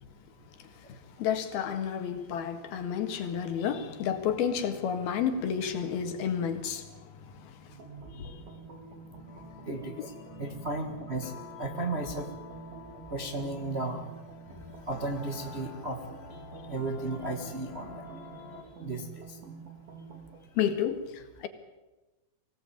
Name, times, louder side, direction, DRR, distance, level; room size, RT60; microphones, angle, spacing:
voice 1, 0.6-7.8 8.1-8.5 10.0-10.1 20.6-21.5, left 8 dB, 85° left, 8 dB, 3.7 m, -31 dB
sound 1, 7.7-20.5, right 4 dB, 70° right, 5.4 m, -48 dB
sound 2, 9.3-18.7, left 4 dB, 50° left, 3.3 m, -48 dB
voice 2, 9.6-10.1 10.4-11.3 11.6-12.3 13.1-14.0 14.9-16.0 16.7-18.0 18.8-19.4, right 2 dB, 35° right, 3 dB, 1.0 m, -34 dB
24.5 x 17.5 x 9.0 m, 1.1 s
omnidirectional pair, 4.3 m